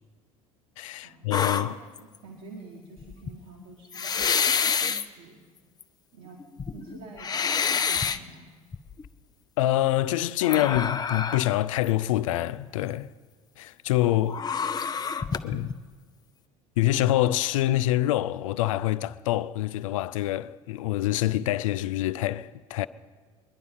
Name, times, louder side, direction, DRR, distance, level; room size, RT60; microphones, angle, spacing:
voice 1, 0.8-1.8 9.6-13.1 13.6-14.4 15.4-15.8 16.8-22.9, left 14 dB, 65° left, 0.4 m, -26 dB
sound 1, 1.3-2.2 3.0-3.3 3.9-5.1 5.8-5.9 6.4-8.2 8.7-9.1 10.4-11.6 11.8-11.9 14.3-15.7, left 6 dB, 20° left, 0.6 m, -27 dB
voice 2, 1.6-5.5 6.1-8.6 14.3-14.8 15.2-15.6, right 3 dB, 55° right, 2.0 m, -48 dB
21.5 x 11.0 x 5.5 m
figure-of-eight pair, 65°, 18 cm